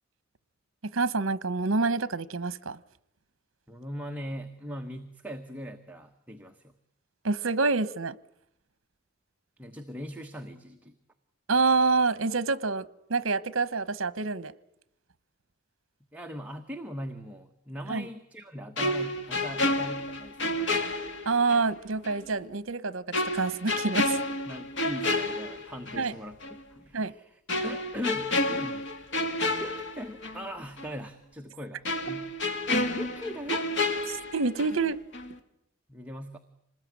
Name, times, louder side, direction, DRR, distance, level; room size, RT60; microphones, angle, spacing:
voice 1, 0.8-2.8 7.2-8.2 11.5-12.8 13.1-14.5 17.9-18.1 21.2-24.2 26.0-26.1 26.9-27.1 34.1-35.0, right 4 dB, 70° right, 18 dB, 1.0 m, -27 dB
voice 2, 3.7-6.7 9.6-10.9 16.1-20.8 24.5-28.8 29.6-32.3 32.9-33.7 35.9-36.4, equal, 5° right, 3 dB, 1.2 m, -40 dB
sound 1, 18.8-21.7 22.0-22.2 23.1-26.1 26.4-26.6 27.5-30.5 30.8-30.9 31.8-34.9 35.1-35.4, left 2 dB, 60° left, 2.3 m, -30 dB
26.0 x 20.5 x 9.5 m, 0.79 s
head